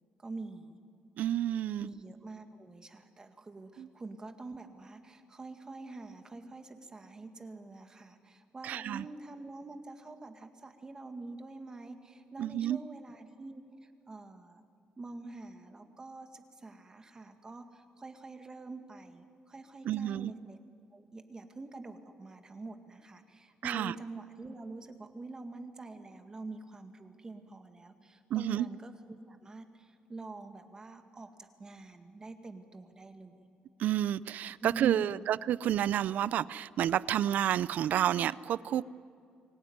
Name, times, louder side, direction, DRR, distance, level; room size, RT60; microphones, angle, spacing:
voice 1, 0.2-0.8 1.8-14.6 15.0-20.6 20.9-28.9 29.3-33.5 34.6-35.3, right 3 dB, 25° right, 6 dB, 2.0 m, -46 dB
voice 2, 1.2-1.9 3.8-3.9 8.6-9.0 12.4-12.8 19.8-20.3 23.6-23.9 28.3-28.7 33.8-38.8, right 11 dB, 65° right, 19 dB, 0.5 m, -30 dB
24.5 x 17.5 x 9.4 m, 2.4 s
cardioid pair, 110°, 3 cm